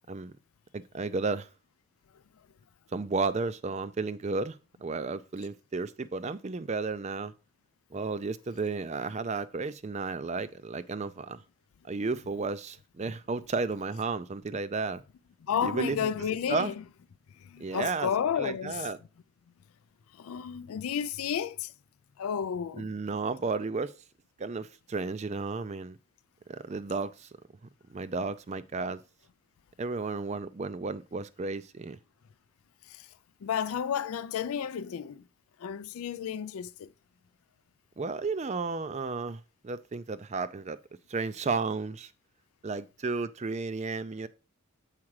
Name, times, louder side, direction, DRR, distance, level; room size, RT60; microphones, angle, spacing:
voice 1, 0.7-1.5 2.9-7.3 7.9-11.4 11.8-15.0 15.6-16.1 16.5-16.7 17.6-18.1 18.4-19.0 22.8-23.9 24.4-26.0 26.5-27.3 27.9-29.0 29.8-32.0 38.0-40.8 41.1-42.1 42.6-44.3, right 4 dB, 30° right, 0.4 m, -33 dB
voice 2, 15.5-16.7 17.4-18.9 20.1-21.7 22.2-22.9 32.9-33.1 33.4-35.2 35.6-36.9, left 8 dB, 75° left, 0.4 m, -32 dB
7.4 x 4.8 x 4.7 m
head